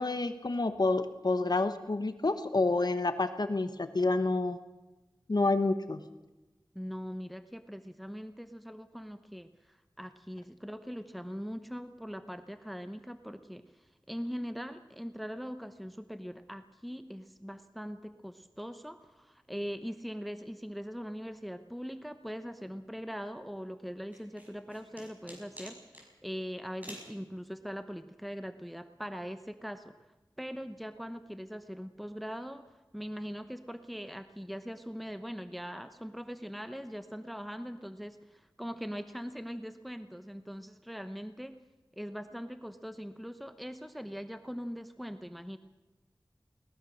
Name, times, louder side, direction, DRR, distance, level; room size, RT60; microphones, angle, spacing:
voice 1, 0.0-4.6 5.3-6.0, left 3 dB, 55° left, 10 dB, 1.0 m, -29 dB
voice 2, 6.7-29.9 30.4-41.6 41.9-45.6, equal, ahead, 9 dB, 0.9 m, -41 dB
sound 1, 24.1-26.1 26.8-27.1, equal, 20° right, 6.2 m, -47 dB
21.5 x 19.5 x 6.4 m, 1.1 s
wide cardioid pair, 60°, 8 cm